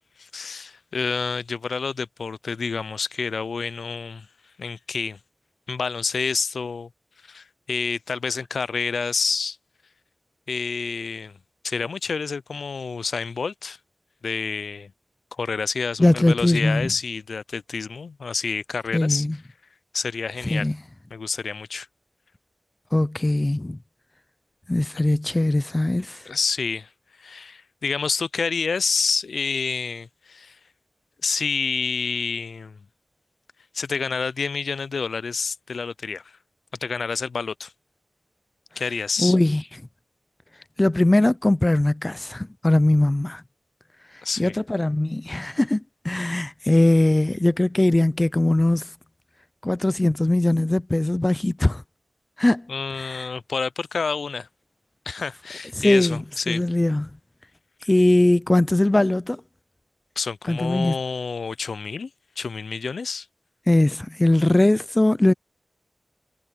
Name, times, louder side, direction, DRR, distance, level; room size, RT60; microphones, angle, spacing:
voice 1, 0.2-4.3 4.6-5.2 5.7-6.9 7.2-9.6 10.5-11.4 11.6-13.8 14.2-14.9 15.4-19.3 19.9-20.7 21.1-21.9 26.3-26.9 27.2-30.6 31.2-32.8 33.7-36.3 36.8-37.7 38.8-39.3 44.2-44.5 52.7-54.5 55.1-56.6 60.2-62.1 62.4-63.3, left 5 dB, 85° left, 0.4 m, -28 dB
voice 2, 16.0-16.9 18.9-19.4 20.4-20.8 22.9-23.8 24.7-26.3 39.2-39.6 40.8-43.4 44.4-48.9 49.6-51.8 52.4-52.7 53.0-53.3 55.8-57.1 57.9-59.4 60.5-61.0 63.7-65.3, left 1 dB, 20° left, 0.4 m, -20 dB
wide cardioid pair, 110°, 0 cm